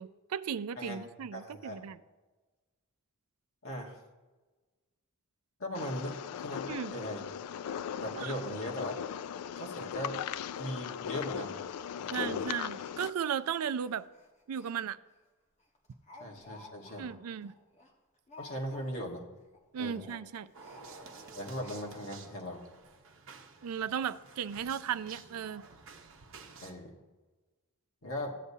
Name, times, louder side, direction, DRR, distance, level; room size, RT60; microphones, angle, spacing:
voice 1, 0.0-2.0 6.7-6.9 8.2-8.4 12.1-14.1 14.5-15.0 17.0-17.5 19.7-20.5 23.6-25.7, right 8 dB, 80° right, 0.4 m, -36 dB
voice 2, 1.3-1.8 3.6-4.0 5.6-6.6 6.9-7.2 8.0-8.9 9.6-10.1 10.6-11.6 12.0-12.5 16.2-17.1 18.4-19.2 19.8-20.0 21.3-22.6 26.6-26.9 28.0-28.3, equal, 65° left, 1.4 m, -39 dB
sound 1, 5.7-13.1, left 8 dB, 85° left, 0.3 m, -38 dB
Speech, 9.3-9.4 9.8-10.0 10.3-10.5 10.8-10.9 11.7-11.9 12.7-14.7 15.1-15.2 15.6-19.2 19.4-19.6 19.9-22.2 22.8-22.9 23.2-23.3, left 2 dB, 30° left, 1.4 m, -56 dB
sound 2, 20.5-26.7, right 4 dB, 60° right, 0.9 m, -52 dB
14.0 x 8.2 x 2.7 m
head